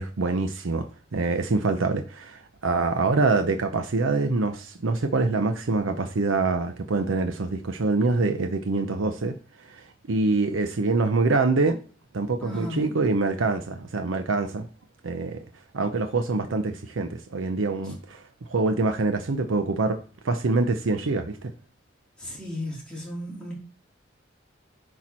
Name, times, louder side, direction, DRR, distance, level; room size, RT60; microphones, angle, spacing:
voice 1, 0.0-11.8 12.1-14.7 15.0-15.4 15.7-20.0 20.2-21.5, right 3 dB, 85° right, 0.7 m, -25 dB
voice 2, 12.4-13.0 22.2-23.5, left 1 dB, 5° left, 2.9 m, -35 dB
10.0 x 4.5 x 4.3 m
head